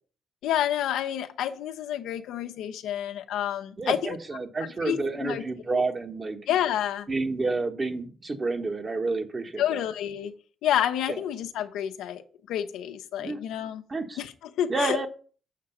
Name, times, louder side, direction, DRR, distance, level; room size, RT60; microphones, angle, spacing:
voice 1, 0.4-4.2 4.8-5.4 5.7-5.8 6.5-7.1 9.6-10.3 10.6-13.8 14.2-15.0, left 11 dB, 85° left, 0.8 m, -29 dB
voice 2, 3.8-6.4 7.1-9.8 13.2-13.4 13.9-14.2 14.7-15.1, right 3 dB, 30° right, 1.3 m, -29 dB
7.5 x 4.8 x 7.1 m
cardioid pair, 90°, 0 cm